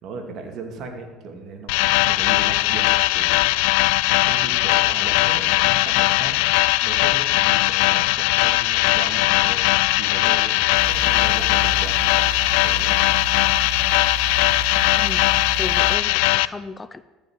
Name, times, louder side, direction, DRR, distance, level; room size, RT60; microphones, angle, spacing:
voice 1, 0.0-2.9 3.1-3.4 4.1-6.4 6.8-13.0, right 4 dB, 55° right, 4 dB, 2.5 m, -37 dB
sound 1, 1.7-16.5, left 20 dB, 70° left, 0.3 m, -19 dB
sound 2, 10.7-16.0, right 5 dB, 35° right, 3.8 m, -32 dB
voice 2, 15.0-17.0, left 3 dB, 20° left, 13 dB, 0.6 m, -35 dB
14.0 x 5.8 x 9.2 m, 1.3 s
hypercardioid pair, 65°, 0 cm